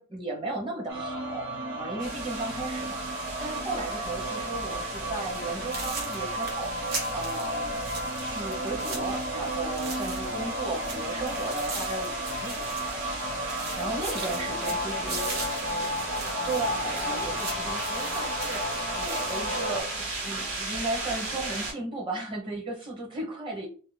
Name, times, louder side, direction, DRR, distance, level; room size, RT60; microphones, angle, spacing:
voice 1, 0.0-7.8 8.2-13.4 13.8-15.3 16.4-23.7, right 2 dB, 25° right, -2 dB, 0.9 m, -35 dB
sound 1, 0.9-19.8, equal, 90° right, 0.7 m, -33 dB
sound 2, 2.0-21.7, right 2 dB, 70° right, 1.5 m, -37 dB
sound 3, 5.2-5.4 5.7-10.5 10.7-13.2 13.5-19.4, right 3 dB, 50° right, 0.8 m, -40 dB
voice 2, 14.5-16.5, left 3 dB, 30° left, 5 dB, 0.4 m, -46 dB
2.7 x 2.0 x 3.2 m, 0.39 s
head